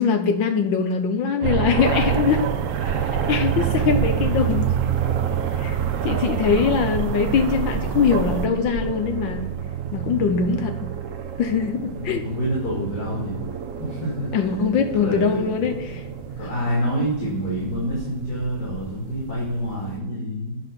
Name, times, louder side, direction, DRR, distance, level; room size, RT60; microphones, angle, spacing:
voice 1, 0.0-2.5 3.3-4.7 5.6-5.8 6.0-9.5 9.9-10.9 11.4-12.2 14.3-16.0 16.4-16.5 19.8-19.9, left 6 dB, 70° left, 7 dB, 1.5 m, -22 dB
sound 1, 1.4-20.0, right 8 dB, 55° right, 1.0 m, -28 dB
sound 2, 1.8-8.5, right 9 dB, 80° right, 0.8 m, -29 dB
voice 2, 6.1-6.6 12.0-13.4 13.8-14.3 15.0-15.7 16.4-20.6, equal, 50° left, -5 dB, 3.2 m, -28 dB
9.4 x 6.0 x 5.7 m, 0.98 s
omnidirectional pair, 2.2 m